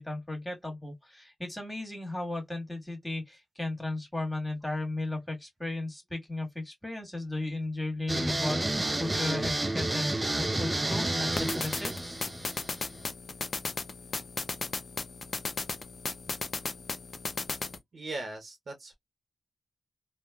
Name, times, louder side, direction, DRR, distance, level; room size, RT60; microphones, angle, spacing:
voice 1, 0.0-12.2, left 2 dB, 10° left, 1.6 m, -35 dB
sound 1, 8.1-13.0, right 2 dB, 25° right, 0.4 m, -30 dB
sound 2, 11.3-17.8, left 3 dB, 55° left, 0.6 m, -36 dB
voice 2, 17.9-18.9, right 2 dB, 65° right, 0.8 m, -39 dB
3.1 x 2.1 x 2.3 m
cardioid pair, 45°, 0 cm